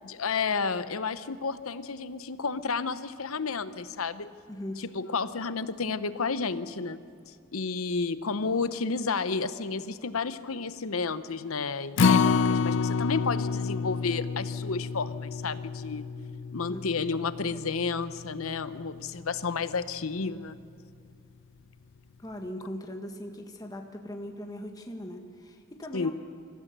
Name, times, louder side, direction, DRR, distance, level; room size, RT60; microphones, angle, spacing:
voice 1, 0.0-4.3 4.8-7.0 7.5-16.1 16.5-20.6 25.9-26.1, left 4 dB, 80° left, 13 dB, 0.9 m, -31 dB
voice 2, 4.5-4.8 16.7-16.8 22.2-26.1, left 1 dB, 15° left, 3 dB, 1.5 m, -39 dB
Acoustic guitar, 12.0-18.3 18.7-18.8 19.2-19.3, left 5 dB, 60° left, 0.4 m, -28 dB
25.0 x 15.0 x 6.8 m, 2.5 s
head